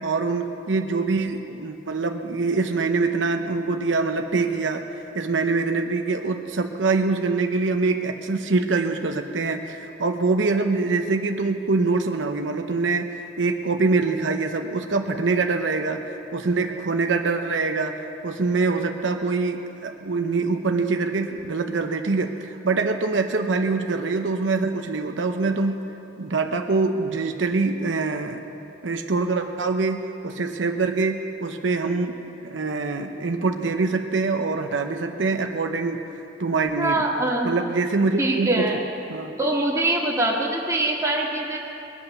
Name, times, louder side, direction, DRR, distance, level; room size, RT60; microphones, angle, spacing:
voice 1, 0.0-25.8 26.2-28.4 28.8-36.0 36.4-37.1 37.4-38.8 39.1-39.3, right 3 dB, 80° right, 5 dB, 0.8 m, -24 dB
voice 2, 36.8-37.5 38.2-38.9 39.4-41.6, right 2 dB, 15° right, -2 dB, 2.0 m, -23 dB
22.0 x 8.3 x 6.7 m, 2.9 s
head